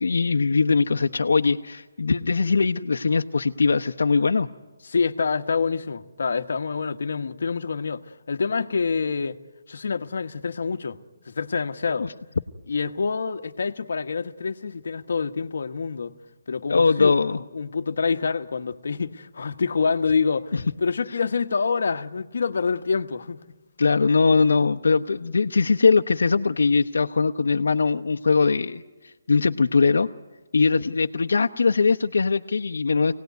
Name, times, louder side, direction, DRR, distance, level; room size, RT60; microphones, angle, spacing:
voice 1, 0.0-4.5 11.9-12.1 16.7-17.4 20.5-20.6 23.8-30.1 30.5-33.1, left 4 dB, 75° left, 0.8 m, -21 dB
voice 2, 4.9-9.4 9.7-11.0 11.3-12.1 12.7-16.1 16.5-17.1 17.5-20.5 20.8-23.4, left 5 dB, 55° left, 1.1 m, -26 dB
26.5 x 18.5 x 9.3 m
hypercardioid pair, 180°, 0 cm